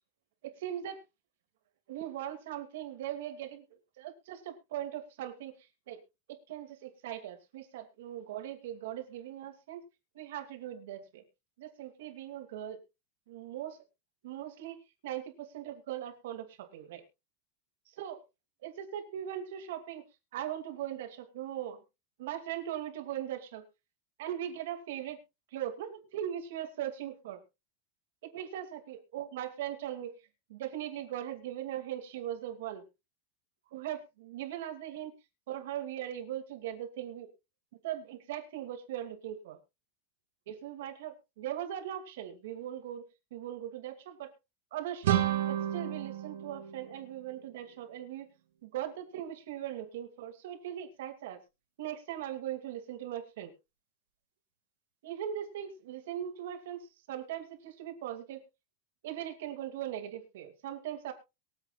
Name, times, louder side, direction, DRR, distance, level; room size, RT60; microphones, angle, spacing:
voice 1, 0.4-1.0 1.9-5.5 5.9-6.0 6.3-9.8 10.1-11.2 11.6-12.8 13.3-13.8 14.2-17.0 17.9-18.2 18.6-20.0 20.3-21.8 22.2-23.6 24.2-25.2 25.5-27.4 28.2-30.1 30.5-32.8 33.7-35.1 35.5-37.3 37.8-39.6 40.5-43.1 43.3-44.3 44.7-45.2 45.5-48.3 48.6-51.4 51.8-53.5 55.0-58.4 59.0-61.1, right 11 dB, 70° right, 5 dB, 2.5 m, -39 dB
sound 1, 45.0-47.8, right 12 dB, 85° right, 2.0 m, -32 dB
23.5 x 7.9 x 2.5 m, 0.26 s
supercardioid pair, 175°, 0 cm